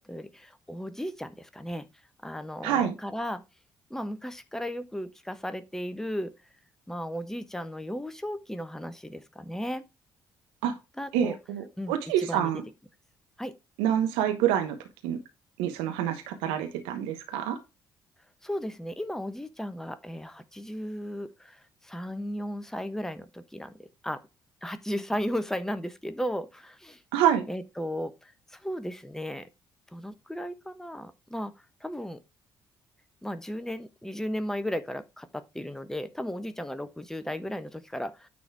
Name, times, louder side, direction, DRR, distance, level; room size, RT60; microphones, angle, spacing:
voice 1, 0.0-1.9 2.2-3.4 3.9-6.3 6.9-9.8 11.0-11.4 11.8-12.5 13.4-13.6 18.4-24.2 24.6-27.0 27.5-29.5 29.9-31.5 31.8-32.2 33.2-38.3, equal, 5° left, 1.0 m, -35 dB
voice 2, 2.6-2.9 10.6-10.8 11.1-12.6 13.8-14.8 15.0-15.2 15.6-17.6 27.1-27.4, right 10 dB, 75° right, 1.0 m, -27 dB
9.6 x 4.2 x 4.6 m
hypercardioid pair, 45°, 10 cm